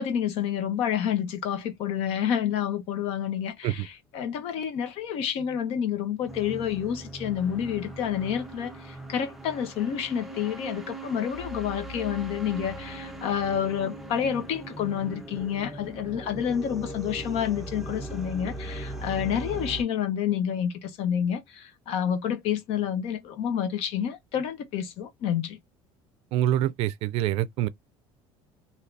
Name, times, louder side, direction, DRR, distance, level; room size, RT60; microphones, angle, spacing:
voice 1, 0.0-25.6, left 9 dB, 65° left, 0.9 m, -29 dB
sound 1, 6.3-19.8, right 1 dB, ahead, 0.6 m, -39 dB
voice 2, 26.3-27.7, right 12 dB, 60° right, 0.4 m, -25 dB
3.3 x 2.8 x 2.4 m
cardioid pair, 145°, 11 cm